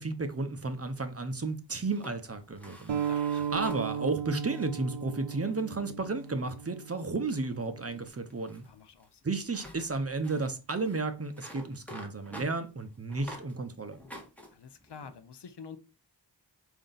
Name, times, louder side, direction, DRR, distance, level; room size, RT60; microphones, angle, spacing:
voice 1, 0.0-2.9 3.5-8.6 9.2-14.0, right 3 dB, 35° right, 0.6 m, -33 dB
sound 1, 0.6-1.4 1.8-4.7 5.2-5.6 6.2-6.5 6.8-7.0 7.3-13.6 13.9-15.2, equal, 5° left, 1.2 m, -50 dB
sound 2, 2.9-8.1, right 7 dB, 80° right, 0.7 m, -36 dB
voice 2, 3.1-3.6 8.6-9.2 14.5-15.8, left 6 dB, 65° left, 0.6 m, -48 dB
4.9 x 2.6 x 3.8 m
wide cardioid pair, 60°, 44 cm